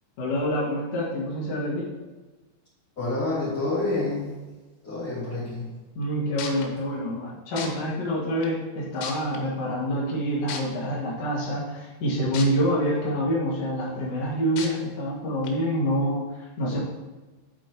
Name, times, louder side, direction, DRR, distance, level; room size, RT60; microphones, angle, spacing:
voice 1, 0.2-1.9 6.0-16.8, equal, 50° left, -7 dB, 1.9 m, -27 dB
voice 2, 3.0-4.3 4.8-5.7, left 2 dB, 25° left, -14 dB, 2.6 m, -28 dB
sound 1, 6.0-6.1 6.4-6.7 7.6-7.7 8.4-8.5 9.0-9.4 10.5-10.6 12.3-12.5 13.0-13.1 14.6-14.7 15.4-15.5, left 7 dB, 85° left, 3.6 m, -33 dB
8.8 x 8.3 x 3.0 m, 1.2 s
omnidirectional pair, 5.7 m